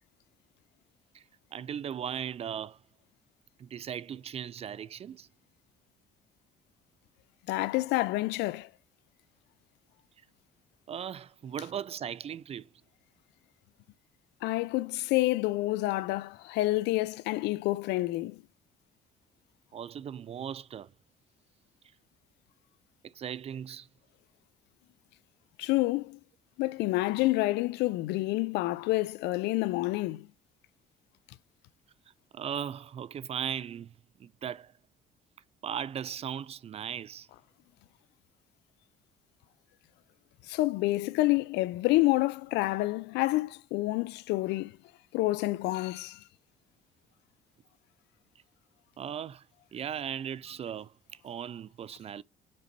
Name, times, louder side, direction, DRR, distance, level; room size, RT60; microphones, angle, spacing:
voice 1, 1.5-2.8 3.6-5.3 10.9-12.7 19.7-20.9 23.0-23.9 32.3-33.9 34.2-34.7 35.6-37.3 49.0-49.5 49.7-52.2, right 9 dB, 35° right, 0.4 m, -37 dB
voice 2, 7.5-8.7 14.4-18.4 25.6-26.2 26.6-30.3 40.5-44.7 45.1-46.2, left 19 dB, 90° left, 0.5 m, -28 dB
5.4 x 4.0 x 5.2 m
cardioid pair, 110°, 17 cm